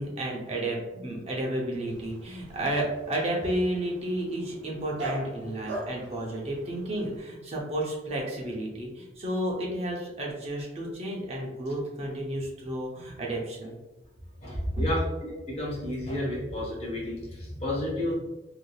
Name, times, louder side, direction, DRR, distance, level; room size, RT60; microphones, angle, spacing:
voice 1, 0.0-13.7 14.7-14.8, right 1 dB, 35° right, -2 dB, 0.7 m, -32 dB
Dog, 1.9-7.2, right 1 dB, 75° right, 0.6 m, -41 dB
voice 2, 14.4-18.2, left 1 dB, 35° left, -6 dB, 1.0 m, -32 dB
3.4 x 2.7 x 2.2 m, 1.1 s
head